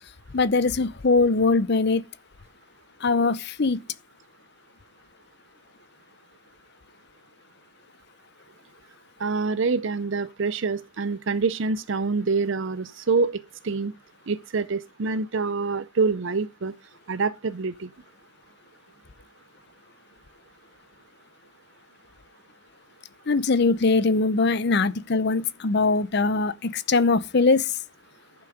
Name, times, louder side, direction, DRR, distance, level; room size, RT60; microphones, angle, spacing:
voice 1, 0.3-2.0 3.0-3.8 23.3-27.6, left 3 dB, 50° left, 0.6 m, -21 dB
voice 2, 9.2-13.3 13.6-13.9 14.3-16.7 17.1-17.9, right 4 dB, 60° right, 0.6 m, -26 dB
11.0 x 6.0 x 5.0 m
head